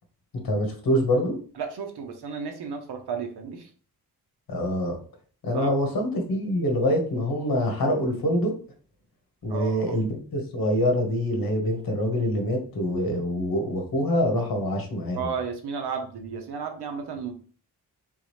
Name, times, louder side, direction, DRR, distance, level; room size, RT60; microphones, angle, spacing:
voice 1, 0.4-1.4 4.5-5.0 5.4-8.5 9.4-15.2, equal, 65° left, 3 dB, 1.4 m, -25 dB
voice 2, 1.6-3.7 5.5-5.7 9.5-10.0 15.2-17.3, right 6 dB, 90° right, 4 dB, 1.0 m, -33 dB
3.8 x 3.6 x 3.2 m, 0.41 s
wide cardioid pair, 135°, 38 cm